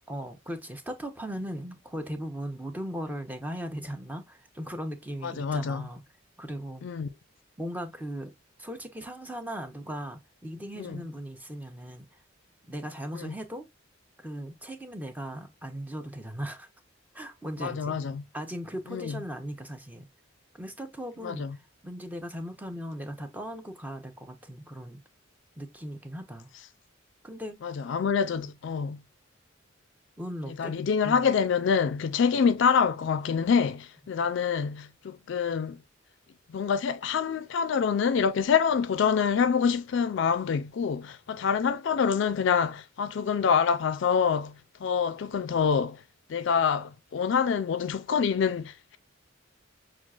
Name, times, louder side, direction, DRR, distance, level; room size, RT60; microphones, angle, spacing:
voice 1, 0.1-6.0 6.4-6.8 7.6-8.3 8.6-12.1 12.7-13.7 14.2-16.7 17.1-18.0 18.3-20.1 20.5-25.0 25.6-26.5 27.2-27.6 28.3-28.5 30.2-31.3 34.2-34.3, equal, 10° right, 0.5 m, -38 dB
voice 2, 5.2-5.9 6.8-7.1 10.8-11.0 13.2-13.3 17.6-18.2 18.9-19.2 21.2-21.5 27.6-29.0 30.6-35.8 36.5-44.5 44.8-46.0 46.3-49.0, left 6 dB, 60° left, 0.4 m, -26 dB
6.0 x 2.4 x 2.3 m
head